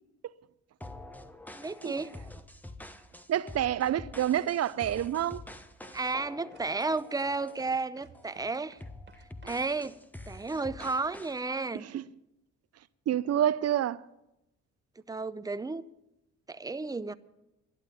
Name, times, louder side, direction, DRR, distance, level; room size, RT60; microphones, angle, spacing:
sound 1, 0.8-7.8 8.1-8.4 8.8-11.4, left 1 dB, 5° left, 1.0 m, -47 dB
voice 1, 1.5-2.1 5.9-8.8 9.4-10.0 10.3-11.9 15.1-15.8 16.5-17.1, right 3 dB, 10° right, 0.6 m, -32 dB
voice 2, 3.3-5.4 11.8-12.0 13.1-14.0, right 11 dB, 55° right, 0.6 m, -28 dB
sound 2, 5.2-10.0, right 5 dB, 35° right, 1.9 m, -56 dB
11.5 x 10.5 x 9.0 m
cardioid pair, 90°, 30 cm